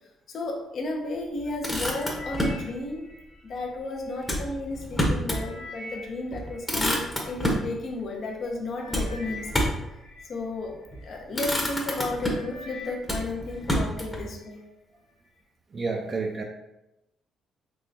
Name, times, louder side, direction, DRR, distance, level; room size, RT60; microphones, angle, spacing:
voice 1, 0.3-3.1 3.4-9.7 10.3-14.6, left 2 dB, 55° left, 1 dB, 0.6 m, -33 dB
Motor vehicle (road), 1.4-2.6 4.2-5.5 5.9-6.0 6.3-7.7 8.9-9.9 10.7-11.0 11.3-12.6 13.0-14.2, equal, 15° left, 0.8 m, -28 dB
sound 1, 1.9-4.3 4.8-7.6 8.3-8.5 8.8-11.1 11.7-11.9 12.2-13.8 14.1-14.6 15.2-15.3, left 2 dB, 75° left, 1.0 m, -45 dB
voice 2, 15.7-16.4, right 4 dB, 40° right, 2 dB, 0.4 m, -31 dB
3.5 x 3.1 x 2.7 m, 0.91 s
cardioid pair, 90°, 0 cm